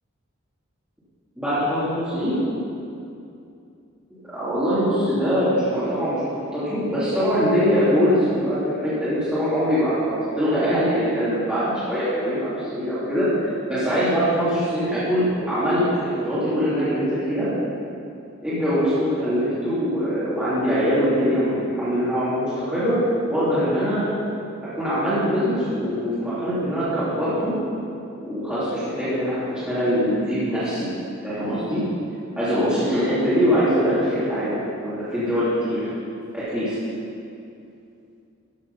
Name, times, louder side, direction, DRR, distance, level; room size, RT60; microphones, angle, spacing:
voice 1, 1.4-2.4 4.3-17.5 18.4-23.0 23.3-24.0 24.7-27.6 28.3-30.9 31.2-31.8 32.4-35.9 36.3-36.7, equal, 5° right, -14 dB, 3.0 m, -23 dB
13.5 x 7.4 x 5.6 m, 2.6 s
head